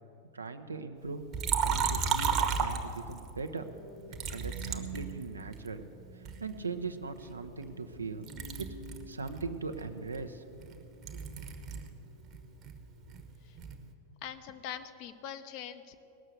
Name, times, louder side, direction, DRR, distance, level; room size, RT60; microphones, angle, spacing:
voice 1, 0.3-1.2 1.6-3.6 4.3-5.9 6.1-8.3 8.6-8.7 9.1-10.7 11.1-11.2, right 4 dB, 75° right, 8 dB, 0.7 m, -40 dB
Liquid, 1.3-3.3 4.1-5.7 6.2-8.0 8.2-11.9 12.2-13.8, right 6 dB, 35° right, 1.1 m, -34 dB
sound 1, 3.3-13.6 14.1-14.4, right 4 dB, 75° left, 2.1 m, -51 dB
voice 2, 14.2-16.0, left 9 dB, 45° left, 9 dB, 0.7 m, -43 dB
18.0 x 6.5 x 8.0 m, 2.9 s
figure-of-eight pair, 90°, 0 cm